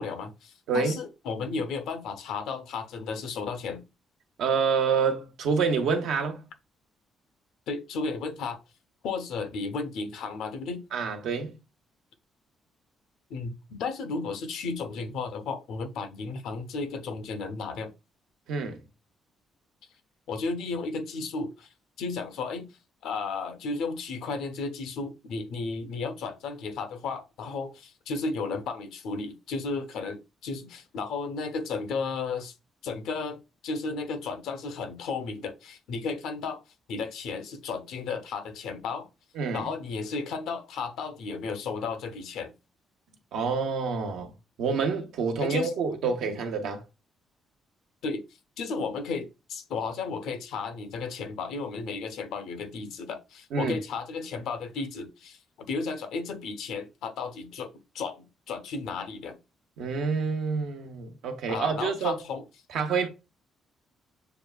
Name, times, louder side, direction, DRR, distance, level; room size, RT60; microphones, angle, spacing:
voice 1, 0.0-3.8 7.7-8.6 9.0-10.8 13.3-17.9 20.3-21.7 22.0-22.7 23.0-32.5 32.8-33.4 33.6-36.6 36.9-39.1 39.5-42.5 45.4-45.7 46.0-46.4 48.0-48.2 48.6-57.7 57.9-59.4 61.5-62.4, left 4 dB, 85° left, 0.7 m, -34 dB
voice 2, 4.4-6.4 10.9-11.6 18.5-18.8 39.4-39.7 43.3-44.3 44.6-46.8 53.5-53.8 59.8-62.2 62.7-63.1, right 5 dB, 80° right, 0.8 m, -27 dB
6.7 x 2.3 x 2.2 m
cardioid pair, 90°, 0 cm